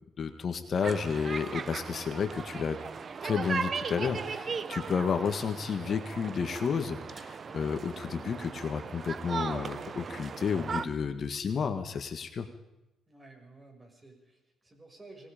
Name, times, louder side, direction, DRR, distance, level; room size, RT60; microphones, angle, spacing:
voice 1, 0.2-2.8 3.2-12.5, left 6 dB, 50° left, 8 dB, 1.7 m, -31 dB
sound 1, 0.8-10.9, right 5 dB, 45° right, 1.1 m, -38 dB
voice 2, 13.1-15.3, right 2 dB, 20° right, 3 dB, 6.4 m, -53 dB
26.5 x 19.0 x 5.2 m, 0.94 s
cardioid pair, 90°, 0 cm